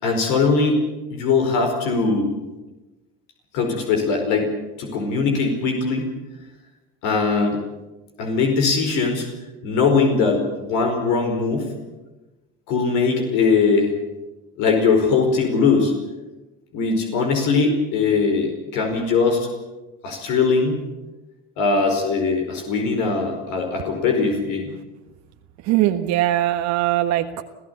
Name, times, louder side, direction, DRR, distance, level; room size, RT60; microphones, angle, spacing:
voice 1, 0.0-0.8 1.1-2.3 3.5-4.5 4.8-6.1 7.0-7.6 8.2-9.3 9.6-11.7 12.7-13.9 14.6-15.9 16.7-19.5 20.0-20.8 21.6-24.7, left 4 dB, 70° left, 3 dB, 4.9 m, -20 dB
voice 2, 25.7-27.4, right 14 dB, 65° right, 6 dB, 1.5 m, -20 dB
26.0 x 15.0 x 8.3 m, 1.1 s
supercardioid pair, 90°, 31 cm